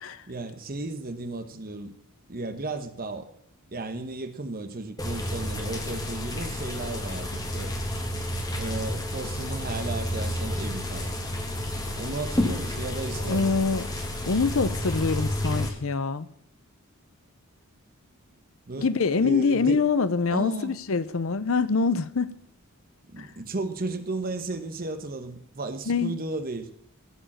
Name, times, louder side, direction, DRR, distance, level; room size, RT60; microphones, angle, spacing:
voice 1, 0.3-1.9 2.3-3.3 3.7-7.7 8.6-11.2 12.0-13.5 18.7-18.9 19.2-19.8 20.3-20.7 23.1-26.7, right 2 dB, 40° right, 1.0 m, -34 dB
sound 1, 5.0-15.7, left 1 dB, 15° left, 1.6 m, -30 dB
voice 2, 13.3-13.9 14.3-16.3 18.8-22.3 23.2-23.3 25.9-26.2, left 4 dB, 60° left, 0.6 m, -25 dB
15.5 x 5.1 x 7.3 m
head